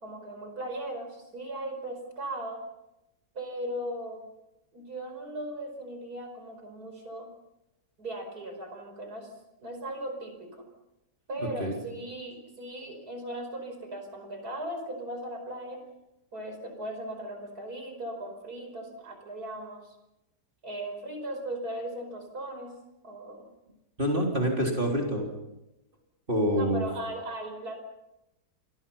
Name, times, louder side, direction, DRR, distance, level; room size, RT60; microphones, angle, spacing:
voice 1, 0.0-2.6 3.3-4.3 4.7-7.3 8.0-9.3 9.6-10.6 11.3-15.8 16.3-20.0 20.6-22.7 23.0-23.5 26.5-27.8, right 1 dB, 65° right, 5 dB, 5.6 m, -38 dB
voice 2, 24.0-25.3 26.3-26.8, equal, 30° right, 0 dB, 4.0 m, -26 dB
29.5 x 22.0 x 5.7 m, 0.92 s
omnidirectional pair, 1.8 m